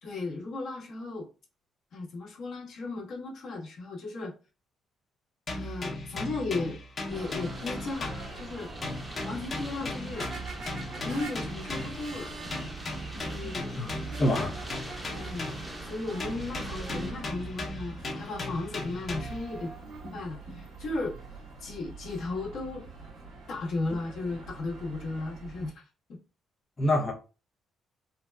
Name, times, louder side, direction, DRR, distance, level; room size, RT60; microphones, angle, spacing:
voice 1, 0.0-1.3 1.9-4.3 5.5-6.8 7.1-8.7 9.2-10.3 11.0-12.3 13.2-13.7 15.1-15.5 15.8-19.7 20.1-21.2 21.6-22.9 23.5-25.8 26.1-26.2, left 3 dB, 70° left, 1.3 m, -35 dB
sound 1, 5.5-8.6 8.8-12.1 12.5-15.8 16.2-19.5, left 1 dB, 45° left, 1.1 m, -37 dB
sound 2, 7.0-17.1, right 1 dB, 20° right, 1.0 m, -44 dB
sound 3, 7.1-25.7, right 3 dB, 80° right, 1.5 m, -44 dB
voice 2, 14.2-15.1 26.8-27.1, left 1 dB, 30° left, 0.6 m, -27 dB
3.9 x 2.2 x 2.2 m
cardioid pair, 85°, 0 cm